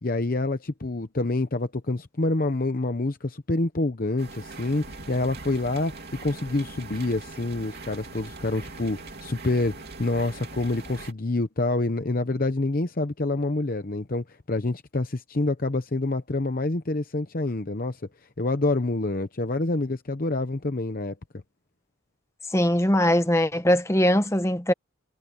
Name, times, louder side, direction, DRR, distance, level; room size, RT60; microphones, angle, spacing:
voice 1, 0.0-18.0 18.4-21.1, left 2 dB, 45° left, 0.8 m, -27 dB
sound 1, 4.2-11.1, right 3 dB, 50° right, 3.0 m, -41 dB
voice 2, 22.5-24.7, equal, 15° left, 1.1 m, -21 dB
head